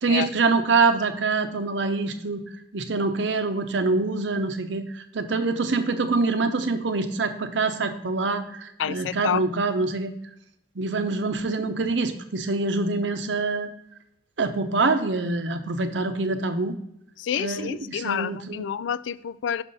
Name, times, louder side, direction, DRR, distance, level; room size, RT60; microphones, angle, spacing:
voice 1, 0.0-2.4 2.7-10.1 10.8-13.7 14.4-16.8 17.4-18.7, right 3 dB, 85° right, 0.8 m, -25 dB
voice 2, 8.8-9.4 17.2-19.6, left 8 dB, 85° left, 0.3 m, -28 dB
5.9 x 5.4 x 4.1 m
head